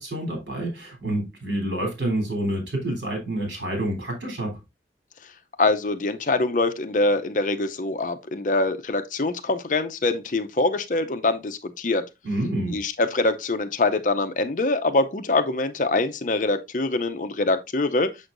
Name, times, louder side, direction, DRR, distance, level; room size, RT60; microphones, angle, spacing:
voice 1, 0.0-4.5 12.2-12.8, right 1 dB, 80° right, 3.4 m, -28 dB
voice 2, 5.6-12.0 12.7-18.1, left 2 dB, 45° left, 0.6 m, -24 dB
7.1 x 6.3 x 2.5 m
head